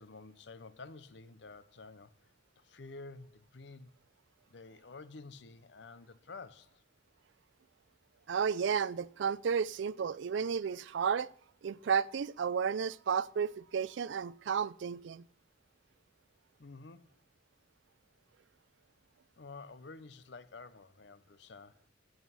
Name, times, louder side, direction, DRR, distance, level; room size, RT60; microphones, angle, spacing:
voice 1, 0.0-3.9 4.5-6.8 16.6-17.1 19.4-21.8, left 3 dB, 60° left, 0.7 m, -51 dB
voice 2, 8.3-11.3 11.6-15.2, right 6 dB, 70° right, 0.4 m, -32 dB
13.5 x 8.0 x 5.5 m
head